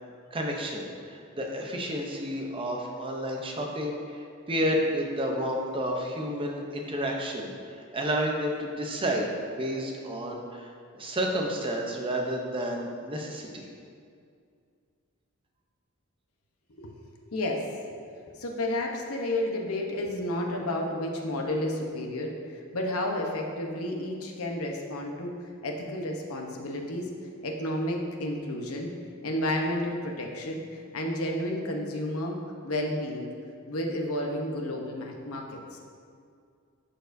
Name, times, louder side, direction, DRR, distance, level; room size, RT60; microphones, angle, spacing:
voice 1, 0.3-7.5 7.9-13.7, equal, 25° right, 1 dB, 0.7 m, -31 dB
voice 2, 17.3-17.7 18.4-27.1 27.4-28.9 29.2-32.4 32.6-33.3 33.7-35.8, left 1 dB, 80° left, 1 dB, 0.9 m, -31 dB
11.5 x 4.5 x 2.6 m, 2.3 s
head